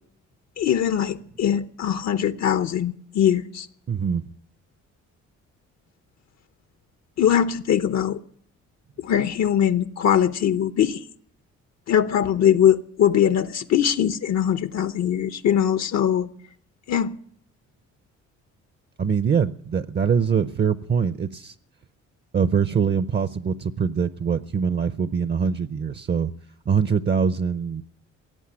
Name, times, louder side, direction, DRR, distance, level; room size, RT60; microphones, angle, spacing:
voice 1, 0.6-3.7 7.2-8.2 9.0-11.1 11.9-16.3 16.9-17.2, left 9 dB, 60° left, 0.8 m, -21 dB
voice 2, 3.9-4.2 19.0-21.5 22.3-26.3 26.7-27.8, right 6 dB, 35° right, 0.7 m, -23 dB
17.5 x 8.1 x 9.8 m
cardioid pair, 90°, 30 cm